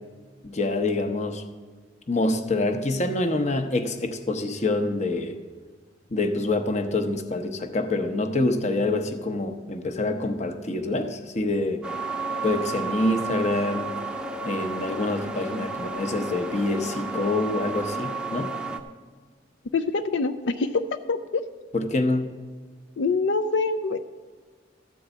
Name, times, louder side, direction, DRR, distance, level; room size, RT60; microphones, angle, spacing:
voice 1, 0.4-1.4 2.1-5.4 6.1-11.8 12.4-13.9 14.5-18.5 21.7-22.3, left 2 dB, 40° left, 7 dB, 0.8 m, -26 dB
sound 1, 11.8-18.8, right 3 dB, 5° right, 0.6 m, -32 dB
voice 2, 19.7-21.4 23.0-24.0, left 4 dB, 75° left, 8 dB, 0.4 m, -25 dB
13.5 x 4.6 x 8.0 m, 1.5 s
head